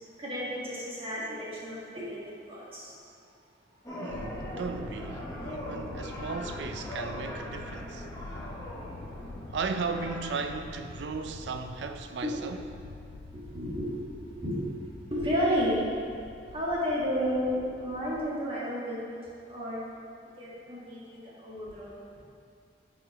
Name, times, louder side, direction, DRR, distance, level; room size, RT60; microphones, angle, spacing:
voice 1, 0.2-2.2 2.5-2.9 9.0-9.1 12.2-12.4 13.3-13.9 14.2-14.5 15.1-15.8 16.5-19.1 19.5-19.8 20.4-22.0, equal, 30° right, 1.5 m, -32 dB
sound 1, 3.8-10.5, equal, 20° left, 1.0 m, -41 dB
voice 2, 4.0-8.1 9.5-12.6, right 4 dB, 65° right, 0.4 m, -36 dB
Thunder, 4.1-18.3, left 3 dB, 80° left, 0.4 m, -46 dB
8.2 x 4.9 x 3.0 m
head